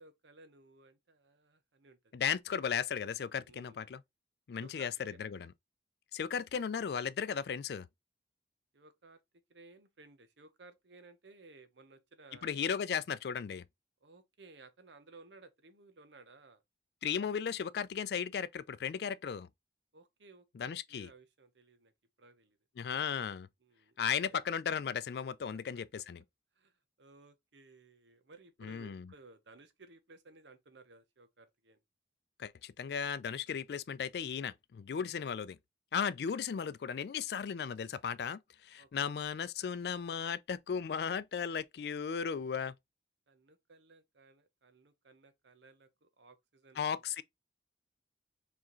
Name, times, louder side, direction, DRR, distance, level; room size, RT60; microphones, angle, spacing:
voice 1, 0.0-2.1 3.4-3.8 4.5-5.3 8.7-9.2 9.5-12.6 14.0-16.6 19.9-21.9 22.2-22.6 23.6-24.4 25.5-25.6 26.5-31.8 34.9-35.1 38.8-39.1 43.3-47.0, right 3 dB, 80° right, 0.9 m, -59 dB
voice 2, 2.1-4.0 4.5-5.5 6.1-7.9 12.4-13.6 17.0-19.5 20.5-21.1 22.8-23.5 24.0-26.2 28.6-29.1 32.4-35.6 35.9-42.7 46.8-47.2, left 7 dB, 65° left, 0.3 m, -36 dB
4.8 x 3.5 x 3.0 m
head